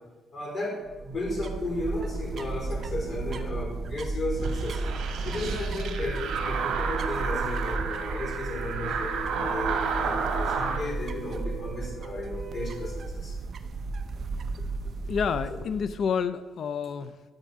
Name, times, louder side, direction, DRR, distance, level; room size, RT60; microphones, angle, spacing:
voice 1, 0.3-4.8 5.2-13.3, left 1 dB, 35° left, 0 dB, 4.2 m, -34 dB
sound 1, 0.9-16.1, right 3 dB, 40° right, 0.8 m, -34 dB
sound 2, 4.4-10.8, right 6 dB, 75° right, 2.1 m, -31 dB
Wind instrument woodwind instrument, 6.3-13.0, right 2 dB, 20° right, 3.7 m, -44 dB
voice 2, 15.0-17.2, left 6 dB, 50° left, 12 dB, 0.5 m, -29 dB
12.5 x 5.3 x 8.5 m, 1.3 s
cardioid pair, 155°, 0 cm